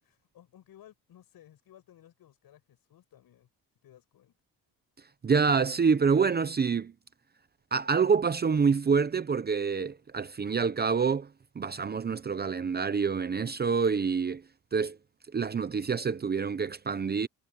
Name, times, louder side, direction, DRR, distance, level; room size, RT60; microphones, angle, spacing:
voice 1, 0.0-3.5 3.8-4.4, left 11 dB, 70° left, 7.2 m, -57 dB
voice 2, 5.2-6.9 7.7-11.3 11.6-14.4 14.7-15.0 15.3-17.3, right 5 dB, 25° right, 0.7 m, -26 dB
cardioid pair, 130°, 37 cm